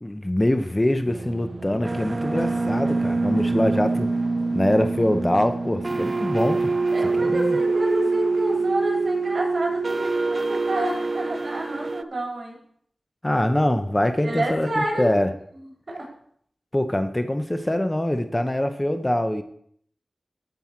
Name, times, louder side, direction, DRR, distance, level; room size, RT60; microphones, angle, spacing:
voice 1, 0.0-4.1 4.5-6.8 7.2-7.6 13.2-15.3 16.7-19.4, left 1 dB, 20° left, 8 dB, 0.9 m, -24 dB
sound 1, 1.1-12.0, right 3 dB, 45° right, 0.4 m, -25 dB
voice 2, 6.9-12.6 14.2-15.1 15.9-16.1, right 1 dB, 60° right, -2 dB, 4.1 m, -29 dB
14.5 x 5.5 x 4.5 m, 0.64 s
cardioid pair, 50°, 0 cm